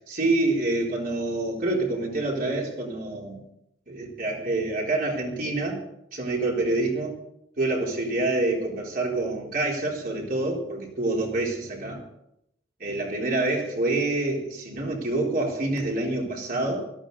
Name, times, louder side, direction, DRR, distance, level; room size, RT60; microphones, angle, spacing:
voice 1, 0.1-3.4 3.9-5.8 6.1-7.1 7.6-12.0 12.8-16.8, right 2 dB, 50° right, -1 dB, 4.0 m, -27 dB
17.5 x 13.5 x 4.1 m, 0.79 s
head